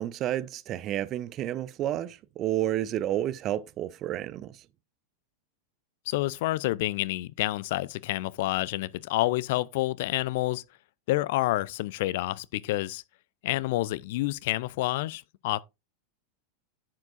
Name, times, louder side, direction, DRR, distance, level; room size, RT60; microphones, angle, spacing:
voice 1, 0.0-4.6, right 12 dB, 35° right, 0.6 m, -30 dB
voice 2, 6.1-10.6 11.1-13.0 13.4-15.6, left 17 dB, 50° left, 0.4 m, -28 dB
10.5 x 7.6 x 2.5 m
figure-of-eight pair, 90°, 0 cm